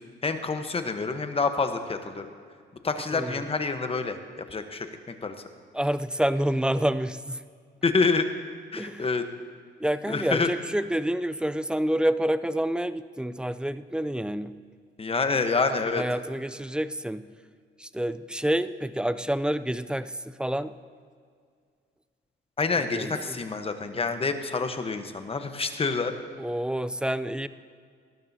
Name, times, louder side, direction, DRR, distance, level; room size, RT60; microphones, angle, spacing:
voice 1, 0.2-2.3 2.8-4.2 4.5-4.9 5.2-5.3 7.8-8.3 8.7-9.2 10.1-10.5 15.0-16.0 22.6-26.1, left 4 dB, 30° left, 8 dB, 1.0 m, -27 dB
voice 2, 3.1-3.5 5.7-7.4 8.8-9.1 9.8-14.5 15.9-17.2 17.8-20.7 22.9-23.4 26.4-27.5, right 1 dB, 5° right, 13 dB, 0.4 m, -28 dB
19.0 x 12.5 x 2.8 m, 2.1 s
cardioid pair, 90°, 20 cm